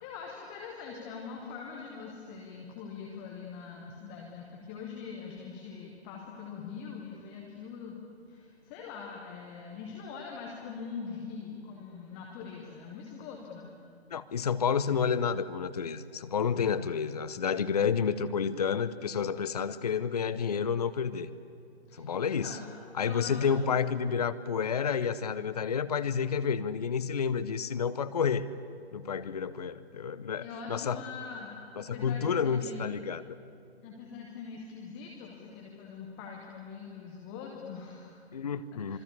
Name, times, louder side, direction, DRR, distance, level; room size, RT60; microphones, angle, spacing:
voice 1, 0.0-8.0 8.3-13.7 21.9-22.0 22.4-22.6 23.0-23.7 30.4-32.9 33.8-38.2 38.7-39.0, left 5 dB, 5° left, -1 dB, 0.6 m, -43 dB
voice 2, 14.1-21.3 21.9-22.6 23.0-28.5 28.9-31.0 31.8-33.2 38.3-39.0, left 6 dB, 35° left, 14 dB, 0.8 m, -30 dB
26.0 x 23.5 x 8.3 m, 2.5 s
figure-of-eight pair, 140°, 33 cm